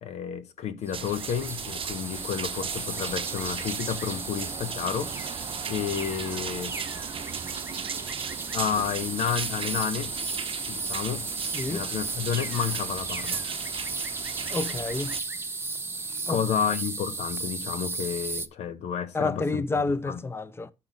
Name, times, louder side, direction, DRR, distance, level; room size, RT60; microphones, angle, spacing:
voice 1, 0.0-5.4 5.7-6.8 8.5-10.1 10.7-11.2 11.7-13.4 16.3-19.6 20.1-20.2, left 8 dB, 85° left, 0.9 m, -31 dB
sound 1, 0.9-18.5, right 3 dB, 20° right, 0.8 m, -35 dB
sound 2, 0.9-15.2, right 7 dB, 55° right, 0.7 m, -36 dB
voice 2, 11.5-11.9 14.5-15.1 16.3-16.4 19.1-20.7, left 3 dB, 20° left, 0.7 m, -29 dB
6.0 x 5.8 x 5.1 m
cardioid pair, 65°, 11 cm